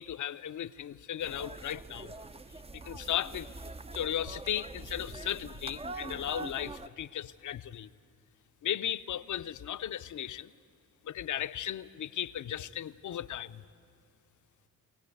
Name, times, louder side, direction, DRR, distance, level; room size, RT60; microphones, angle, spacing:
voice 1, 0.0-2.1 2.5-3.5 3.9-7.9 8.6-10.5 11.0-13.6, left 10 dB, 45° left, 13 dB, 0.7 m, -36 dB
sound 1, 1.2-6.9, right 3 dB, 15° right, 0.5 m, -44 dB
23.0 x 18.0 x 8.3 m, 2.4 s
hypercardioid pair, 45°, 43 cm